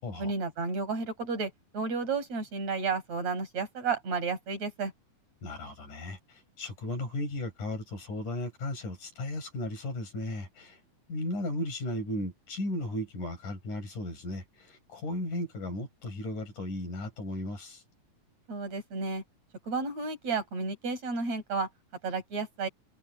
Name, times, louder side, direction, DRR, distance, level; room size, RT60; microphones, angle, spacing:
voice 1, 0.2-4.9 18.5-19.2 19.6-21.7 22.0-22.7, right 4 dB, 55° right, 6.5 m, -32 dB
voice 2, 5.4-10.8 11.1-17.8, left 1 dB, 75° left, 7.4 m, -35 dB
omnidirectional pair, 3.6 m